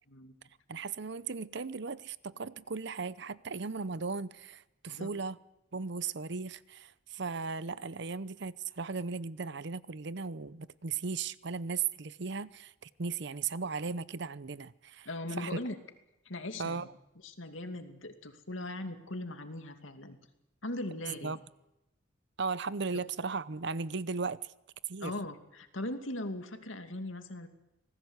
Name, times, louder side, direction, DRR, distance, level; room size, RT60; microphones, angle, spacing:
voice 1, 0.7-5.4 5.7-15.1 15.4-15.6 16.6-16.9 21.2-21.4 22.4-24.5 24.9-25.1, right 4 dB, 60° right, 0.8 m, -36 dB
voice 2, 15.0-15.8 16.2-16.9 17.2-20.2 20.6-21.3 25.0-27.5, left 1 dB, 90° left, 2.5 m, -39 dB
26.0 x 19.0 x 8.1 m
head